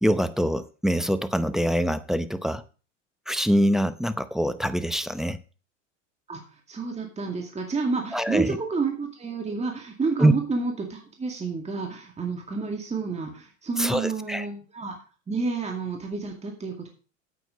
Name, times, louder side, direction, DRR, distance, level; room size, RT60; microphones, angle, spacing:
voice 1, 0.0-2.6 3.3-5.4 8.1-8.6 10.2-10.3 13.8-14.5, equal, ahead, 13 dB, 0.7 m, -24 dB
voice 2, 6.7-15.0 15.3-16.9, right 4 dB, 20° right, 2 dB, 2.2 m, -30 dB
9.3 x 8.3 x 4.9 m, 0.36 s
hypercardioid pair, 90°, 37 cm